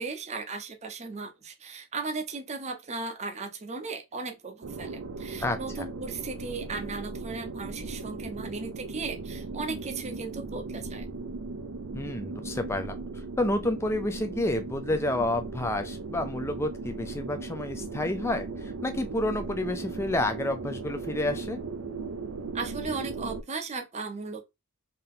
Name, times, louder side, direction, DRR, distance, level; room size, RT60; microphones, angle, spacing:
voice 1, 0.0-11.1 22.5-24.4, right 4 dB, 30° right, 0.7 m, -36 dB
sound 1, 4.6-23.4, right 3 dB, 75° right, 0.5 m, -37 dB
voice 2, 5.4-5.9 11.9-13.0 13.4-21.6, left 1 dB, 10° left, 0.4 m, -30 dB
3.8 x 2.8 x 3.7 m
head